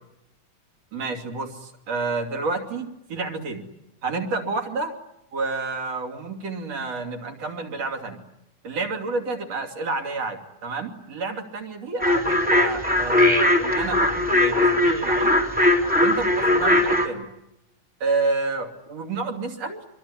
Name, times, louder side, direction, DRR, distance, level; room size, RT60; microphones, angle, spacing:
voice 1, 0.9-3.7 4.0-4.9 5.3-8.2 8.6-15.3 16.0-17.2 18.0-19.8, right 3 dB, 60° right, 3 dB, 3.9 m, -29 dB
sound 1, 12.0-17.1, left 1 dB, 5° right, 2.9 m, -20 dB
25.0 x 23.5 x 9.8 m, 0.85 s
omnidirectional pair, 3.4 m